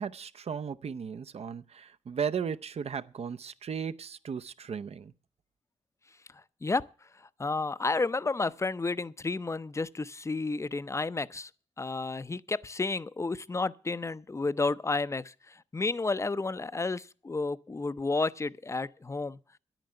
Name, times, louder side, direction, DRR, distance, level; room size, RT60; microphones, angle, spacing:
voice 1, 0.0-5.1, right 7 dB, 60° right, 0.7 m, -36 dB
voice 2, 6.3-6.8 7.2-11.5 11.8-19.4, left 3 dB, 25° left, 0.5 m, -31 dB
10.5 x 9.1 x 7.7 m
cardioid pair, 75°, 12 cm